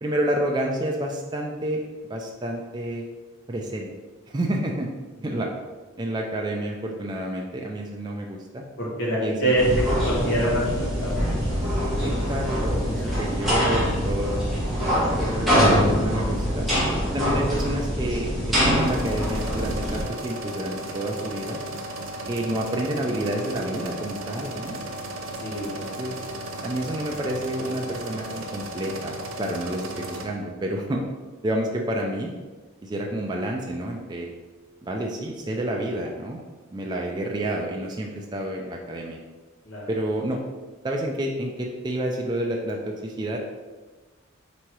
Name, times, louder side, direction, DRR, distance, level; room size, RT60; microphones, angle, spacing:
voice 1, 0.0-1.8 2.1-3.1 3.5-3.9 4.3-4.9 5.2-5.5 6.0-8.6 9.2-9.5 12.0-14.4 15.2-16.7 17.1-21.6 22.3-24.8 25.8-26.2 26.6-31.0 31.4-32.3 32.8-34.3 34.8-36.4 36.7-39.2 39.9-40.4 40.8-43.4, right 1 dB, 20° right, 0 dB, 0.3 m, -29 dB
voice 2, 8.8-11.4 12.9-13.1 25.4-25.9 39.6-39.9, right 1 dB, 55° left, -4 dB, 1.2 m, -26 dB
sound 1, 9.6-20.0, equal, ahead, 1.1 m, -24 dB
sound 2, 18.8-30.3, right 1 dB, 75° right, 0.6 m, -35 dB
3.6 x 3.0 x 4.5 m, 1.3 s
head